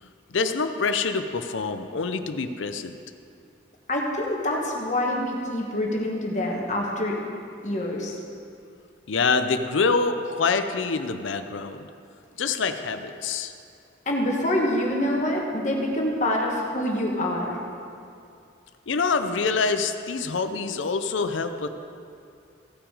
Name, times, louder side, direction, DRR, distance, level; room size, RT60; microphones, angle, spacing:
voice 1, 0.3-3.0 9.1-11.9 12.4-13.5 18.9-21.7, left 4 dB, 90° left, 8 dB, 0.6 m, -26 dB
voice 2, 3.9-7.2 7.6-8.2 14.1-17.6, left 1 dB, 40° left, -1 dB, 1.4 m, -26 dB
16.0 x 6.0 x 4.9 m, 2.5 s
head